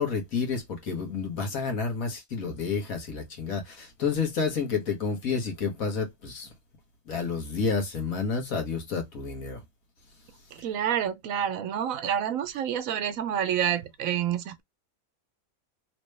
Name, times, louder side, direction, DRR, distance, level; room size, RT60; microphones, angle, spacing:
voice 1, 0.0-6.5 7.1-9.6, left 5 dB, 70° left, 1.7 m, -30 dB
voice 2, 10.6-14.6, right 9 dB, 75° right, 1.0 m, -28 dB
3.3 x 3.0 x 3.2 m
omnidirectional pair, 1.5 m